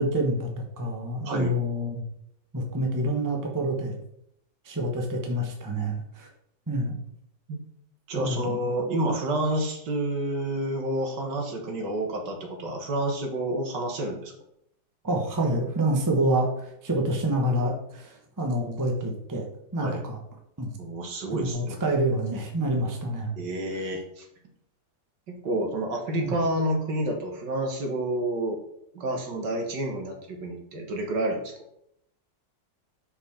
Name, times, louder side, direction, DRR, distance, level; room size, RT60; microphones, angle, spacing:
voice 1, 0.0-2.0 2.5-4.0 4.6-6.3 6.7-6.9 8.2-8.5 15.0-19.5 19.7-20.2 20.6-20.7 21.3-23.3 26.1-26.3, right 1 dB, 15° right, 1 dB, 0.8 m, -27 dB
voice 2, 8.1-14.3 19.8-20.0 20.8-21.8 23.4-24.3 25.3-28.6 28.9-31.5, right 1 dB, 70° right, 2 dB, 1.9 m, -29 dB
5.5 x 4.3 x 5.6 m, 0.74 s
omnidirectional pair, 1.9 m